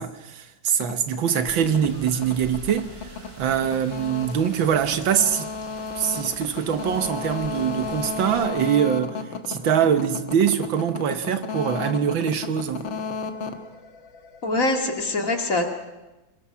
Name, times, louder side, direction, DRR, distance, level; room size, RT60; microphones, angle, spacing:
voice 1, 0.0-2.9 3.4-5.5 6.0-9.2 9.5-12.9, right 8 dB, 85° right, 1.9 m, -23 dB
sound 1, 0.7-14.5, left 5 dB, 85° left, 2.2 m, -33 dB
sound 2, 1.6-8.5, right 1 dB, 50° right, 4.9 m, -44 dB
voice 2, 14.4-15.6, left 2 dB, 45° left, 2.5 m, -23 dB
25.5 x 20.5 x 5.7 m
omnidirectional pair, 2.1 m